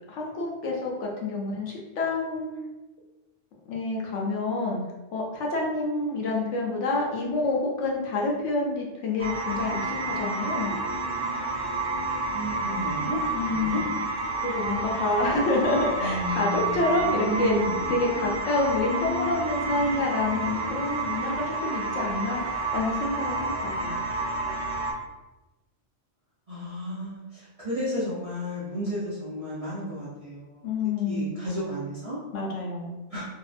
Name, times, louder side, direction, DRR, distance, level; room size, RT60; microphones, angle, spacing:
voice 1, 0.1-2.5 3.7-4.8 5.1-10.7 13.3-13.9 14.4-17.6 17.9-23.5 23.8-23.9 30.6-31.4 32.3-33.0, left 2 dB, 75° left, -2 dB, 0.9 m, -28 dB
sound 1, 9.2-24.9, right 2 dB, 85° right, 1.0 m, -30 dB
voice 2, 12.3-13.8 16.0-17.9 26.5-30.7 31.0-32.2 33.1-33.3, equal, 50° right, -10 dB, 0.4 m, -33 dB
2.6 x 2.0 x 2.4 m, 1.1 s
omnidirectional pair, 1.3 m